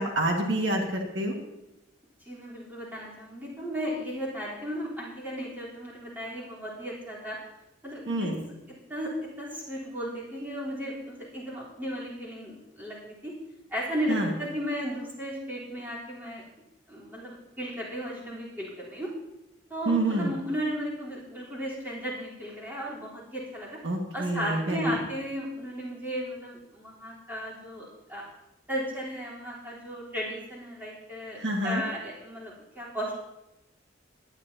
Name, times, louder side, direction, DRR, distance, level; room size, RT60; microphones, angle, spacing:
voice 1, 0.0-1.4 8.1-8.4 14.1-14.3 19.9-20.3 23.8-25.0 31.4-31.8, right 1 dB, 70° right, 1 dB, 1.7 m, -27 dB
voice 2, 2.2-7.4 7.8-8.3 8.9-9.1 9.4-13.0 13.2-13.3 13.7-16.4 16.9-19.1 19.7-23.8 24.1-28.3 28.7-33.1, equal, 10° right, -7 dB, 3.6 m, -35 dB
18.0 x 11.0 x 2.8 m, 0.92 s
head